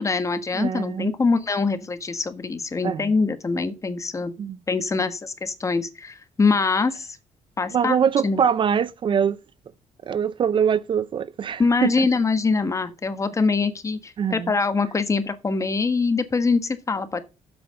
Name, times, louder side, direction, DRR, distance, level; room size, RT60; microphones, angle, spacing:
voice 1, 0.0-4.3 4.7-7.1 7.6-8.0 8.2-8.4 11.6-17.2, left 4 dB, 25° left, 1.3 m, -23 dB
voice 2, 0.5-1.1 2.8-3.1 4.4-4.6 7.7-9.4 10.1-12.1 14.2-14.5, right 7 dB, 45° right, 0.5 m, -23 dB
7.9 x 6.0 x 6.7 m
cardioid pair, 115°, 12 cm